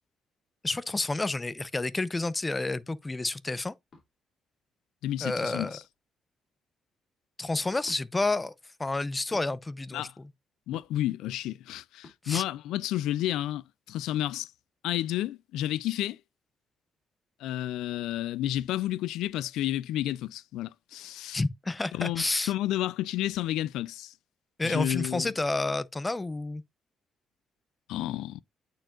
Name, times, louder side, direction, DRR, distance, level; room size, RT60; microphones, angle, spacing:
voice 1, 0.6-3.7 5.2-5.8 7.4-8.5 8.8-10.3 12.2-12.4 21.3-22.5 24.6-26.6, left 2 dB, 20° left, 0.5 m, -30 dB
sound 1, 3.9-4.1 5.6-6.0 7.8-8.0 9.3-9.5 10.7-11.1 12.0-12.2, left 3 dB, 50° left, 2.7 m, -51 dB
voice 2, 5.0-5.8 9.9-10.1 10.7-14.5 14.8-16.2 17.4-21.4 21.9-24.1 24.6-25.3 27.9-28.4, left 13 dB, 90° left, 0.3 m, -31 dB
8.8 x 4.5 x 2.4 m
cardioid pair, 90°, 0 cm